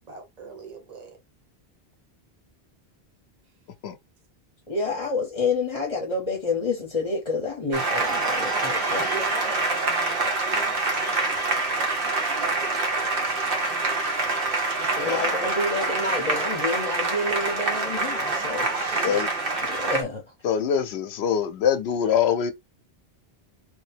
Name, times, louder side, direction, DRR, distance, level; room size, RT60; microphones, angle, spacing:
voice 1, 0.1-1.2 4.9-5.0 8.5-13.0 14.9-16.0 18.7-19.2, right 3 dB, 40° right, 1.0 m, -39 dB
voice 2, 4.7-9.0 14.8-19.2 19.6-20.2, left 3 dB, 35° left, 0.9 m, -29 dB
Applause, 7.7-20.0, right 3 dB, 60° right, 1.2 m, -26 dB
voice 3, 15.0-15.4 19.0-19.3 20.4-22.5, left 8 dB, 80° left, 0.8 m, -24 dB
3.3 x 2.8 x 3.4 m
omnidirectional pair, 1.1 m